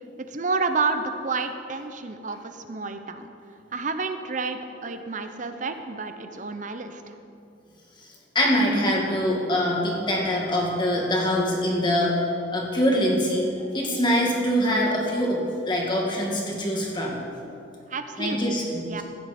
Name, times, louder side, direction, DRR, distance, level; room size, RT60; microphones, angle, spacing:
voice 1, 0.2-3.3 3.7-7.1 17.9-18.6 18.9-19.0, right 4 dB, 45° right, 8 dB, 0.7 m, -30 dB
voice 2, 8.3-13.5 13.7-15.4 15.7-17.2 18.2-19.0, equal, 25° left, -2 dB, 2.0 m, -24 dB
15.0 x 9.4 x 4.3 m, 2.6 s
head